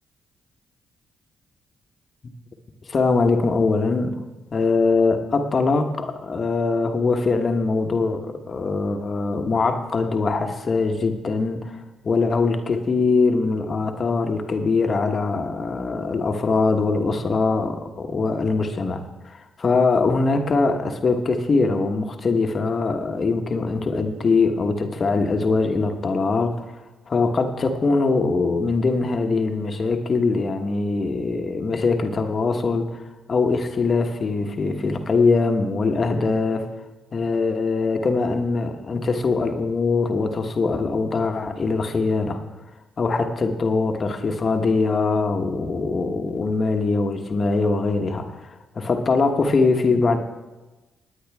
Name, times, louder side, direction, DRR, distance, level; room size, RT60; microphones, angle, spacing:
voice 1, 2.9-4.2 4.5-11.8 12.0-26.7 27.1-36.7 37.1-42.4 43.0-50.2, left 3 dB, 45° left, 5 dB, 1.3 m, -22 dB
17.5 x 9.5 x 3.6 m, 1.1 s
supercardioid pair, 55°, 0 cm